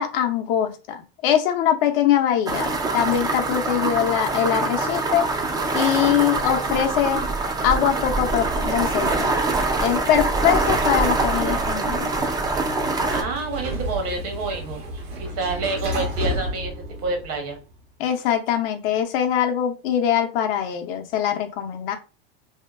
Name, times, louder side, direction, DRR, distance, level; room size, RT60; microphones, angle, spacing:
voice 1, 0.0-5.3 5.7-7.3 7.6-9.4 9.8-12.1 18.0-22.0, left 10 dB, 65° left, 5 dB, 0.6 m, -22 dB
sound 1, 2.5-13.2, right 3 dB, 15° right, 0.3 m, -24 dB
Sliding door, 12.4-17.6, equal, 75° right, 1.1 m, -31 dB
voice 2, 13.1-14.8 15.2-16.7 17.0-17.6, right 3 dB, 50° right, 4 dB, 1.0 m, -28 dB
2.8 x 2.2 x 2.3 m, 0.31 s
hypercardioid pair, 100°, 30 cm